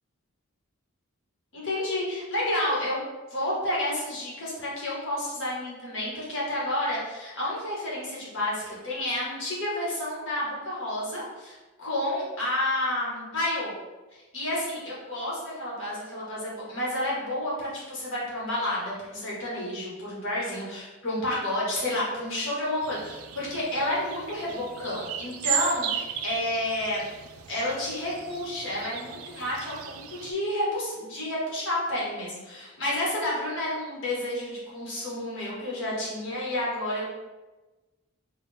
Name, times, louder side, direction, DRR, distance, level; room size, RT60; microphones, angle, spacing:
voice 1, 1.5-3.0 3.3-13.7 14.3-27.0 27.5-37.0, left 1 dB, 60° left, -6 dB, 1.4 m, -30 dB
sound 1, 22.8-30.3, right 9 dB, 75° right, 0.3 m, -36 dB
3.9 x 2.3 x 3.5 m, 1.2 s
head